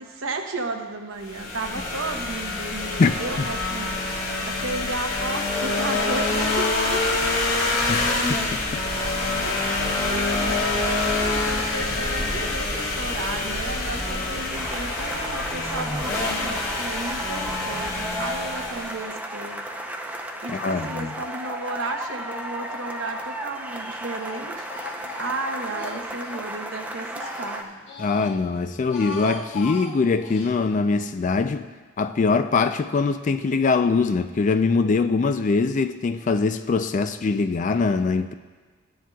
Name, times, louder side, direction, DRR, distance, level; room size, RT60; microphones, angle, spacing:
voice 1, 0.0-3.9 4.4-7.2 9.1-10.6 11.0-19.6 20.4-24.7 25.1-27.7, right 2 dB, 85° right, 4 dB, 1.0 m, -33 dB
sound 1, 1.2-19.1, left 2 dB, 85° left, 2.1 m, -26 dB
voice 2, 3.0-3.5 7.9-8.4 8.7-8.8 20.5-21.1 28.0-31.7 32.0-38.3, left 4 dB, 40° left, 9 dB, 0.3 m, -23 dB
sound 2, 14.5-27.6, right 1 dB, 10° right, 0.6 m, -34 dB
Speech, 22.7-23.4 23.7-26.5 26.9-28.4 28.7-30.5, left 3 dB, 70° left, 1.3 m, -39 dB
14.5 x 10.0 x 2.3 m, 1.4 s
head